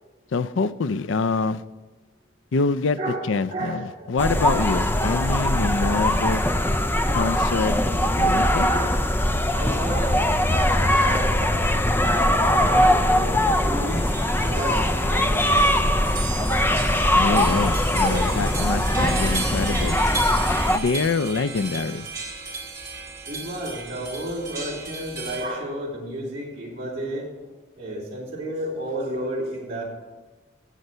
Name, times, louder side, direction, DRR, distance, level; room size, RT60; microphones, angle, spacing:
voice 1, 0.3-1.6 2.5-3.0 3.3-6.4 7.1-7.8 8.2-8.7 17.1-20.0 20.7-22.1, left 4 dB, 85° left, 15 dB, 0.5 m, -25 dB
voice 2, 3.0-4.1 8.7-9.0 9.5-11.7 12.0-14.1 14.4-15.4 18.0-18.3 23.3-27.3 27.8-29.8, right 1 dB, 30° right, -4 dB, 3.7 m, -32 dB
sound 1, 4.2-20.8, left 1 dB, 10° left, 0.4 m, -21 dB
sound 2, 13.9-25.5, right 4 dB, 15° right, 2.5 m, -35 dB
15.5 x 8.0 x 5.5 m, 1.2 s
head